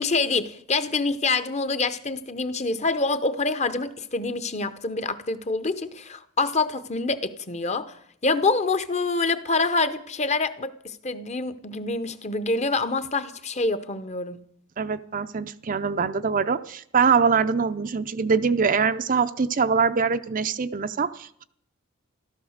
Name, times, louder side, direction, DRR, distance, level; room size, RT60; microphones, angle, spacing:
voice 1, 0.0-7.9 8.2-14.4, left 3 dB, 30° left, 0.8 m, -26 dB
voice 2, 14.8-21.4, right 5 dB, 40° right, 0.5 m, -23 dB
14.5 x 13.0 x 6.5 m
head